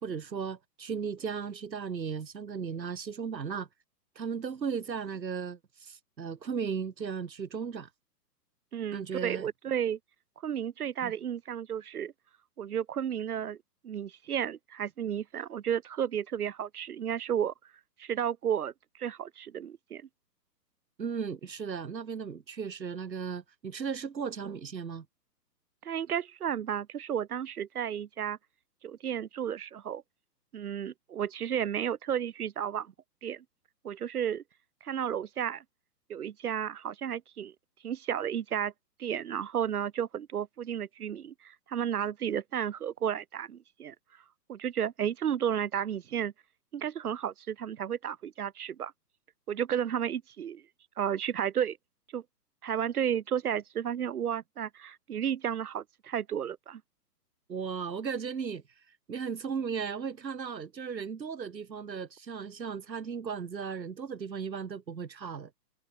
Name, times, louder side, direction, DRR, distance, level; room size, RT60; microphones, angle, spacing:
voice 1, 0.0-3.7 4.1-7.9 8.9-9.5 11.0-11.1 21.0-25.0 57.5-58.6 59.1-65.5, right 6 dB, 85° right, 4.7 m, -36 dB
voice 2, 8.7-10.0 10.4-12.1 12.6-13.6 13.8-17.5 18.0-20.1 25.8-28.4 28.8-30.0 30.5-32.9 33.2-33.4 33.8-34.4 34.8-35.6 36.1-37.5 37.8-38.7 39.0-44.0 44.5-46.3 46.7-48.9 49.5-50.6 51.0-51.8 52.1-52.2 52.6-56.8, right 9 dB, 60° right, 5.3 m, -32 dB
hypercardioid pair, 155°, 50 cm